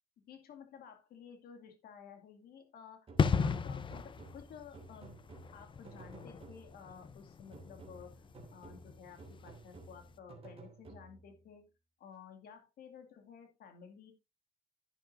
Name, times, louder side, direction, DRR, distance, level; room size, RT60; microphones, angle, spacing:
voice 1, 0.2-3.1 3.4-5.2 5.5-8.2 8.5-11.7 12.0-14.1, left 7 dB, 65° left, 2.4 m, -54 dB
sound 1, 3.1-6.9 7.5-11.4, right 3 dB, 35° right, 2.9 m, -54 dB
sound 2, 3.2-9.7 9.9-10.1, left 6 dB, 30° left, 0.7 m, -36 dB
10.5 x 10.0 x 2.6 m
cardioid pair, 110°, 17 cm